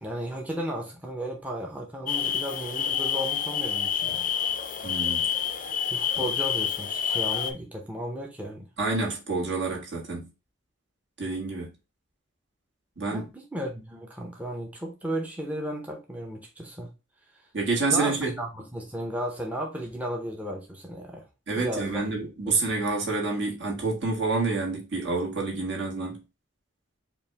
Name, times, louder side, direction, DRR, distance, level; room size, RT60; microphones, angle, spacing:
voice 1, 0.0-4.3 5.9-8.7 13.1-16.9 17.9-21.2 21.6-22.1 22.5-22.6, equal, 10° right, 0.6 m, -34 dB
sound 1, 2.1-7.5, left 8 dB, 45° left, 0.5 m, -28 dB
voice 2, 4.8-5.3 6.1-6.2 8.8-10.3 11.2-11.7 13.0-13.3 17.5-18.3 21.5-26.2, right 3 dB, 65° right, 1.8 m, -28 dB
4.9 x 2.5 x 3.3 m
head